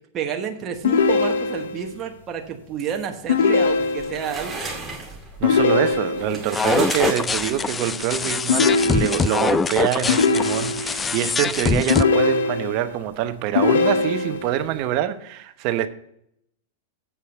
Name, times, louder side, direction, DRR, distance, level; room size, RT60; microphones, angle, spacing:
voice 1, 0.1-4.7, right 8 dB, 35° right, 1.1 m, -30 dB
sound 1, 0.8-1.9 3.3-4.3 5.4-6.5 8.5-9.5 10.1-11.0 11.9-12.9 13.5-14.6, left 4 dB, 80° left, 0.8 m, -21 dB
sound 2, 3.7-7.9, right 3 dB, 10° right, 2.3 m, -34 dB
voice 2, 5.4-15.9, right 11 dB, 50° right, 0.8 m, -25 dB
sound 3, 6.5-12.0, left 5 dB, 15° left, 0.3 m, -24 dB
8.1 x 5.5 x 7.5 m
hypercardioid pair, 120°, 0 cm